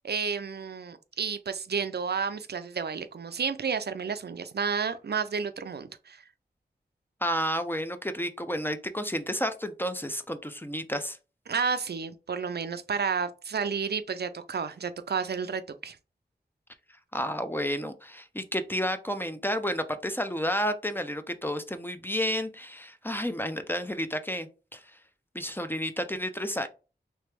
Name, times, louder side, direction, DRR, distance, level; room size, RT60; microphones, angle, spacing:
voice 1, 0.0-6.2 11.5-16.0, right 6 dB, 70° right, 0.4 m, -31 dB
voice 2, 7.2-11.2 17.1-24.8 25.3-26.7, equal, 10° left, 0.5 m, -31 dB
3.3 x 3.1 x 3.3 m
wide cardioid pair, 65°, 18 cm